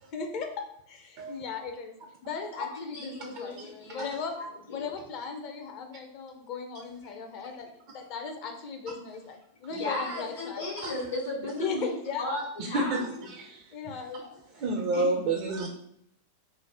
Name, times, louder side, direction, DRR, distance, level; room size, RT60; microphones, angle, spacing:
voice 1, 0.1-2.0 2.2-4.3 4.7-10.6 11.5-12.8 13.7-14.4, left 5 dB, 40° left, 4 dB, 0.5 m, -37 dB
voice 2, 2.5-4.1 4.4-4.9 7.0-7.1 9.7-11.9 12.2-12.4 12.7-13.1 14.9-15.1, left 2 dB, 70° left, -3 dB, 1.0 m, -35 dB
voice 3, 12.6-13.0 13.3-13.7 14.5-15.7, right 2 dB, 45° right, 1 dB, 0.4 m, -29 dB
2.5 x 2.1 x 3.4 m, 0.71 s
figure-of-eight pair, 90°, 0 cm